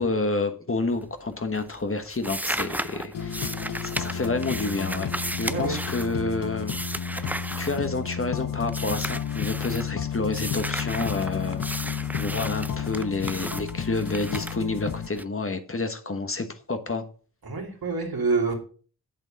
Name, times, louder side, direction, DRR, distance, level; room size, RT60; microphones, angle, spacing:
voice 1, 0.0-3.5 3.8-5.1 5.4-6.8 7.2-11.9 12.1-17.0, left 3 dB, 35° left, 1.3 m, -29 dB
sound 1, 0.9-1.3 1.6-8.3 8.7-9.9 10.3-15.2, right 1 dB, 5° right, 0.5 m, -35 dB
sound 2, 3.1-15.1, left 8 dB, 55° left, 0.9 m, -32 dB
voice 2, 5.5-5.8 17.4-18.5, right 4 dB, 65° right, 3.1 m, -26 dB
8.2 x 7.8 x 5.2 m
wide cardioid pair, 80°, 40 cm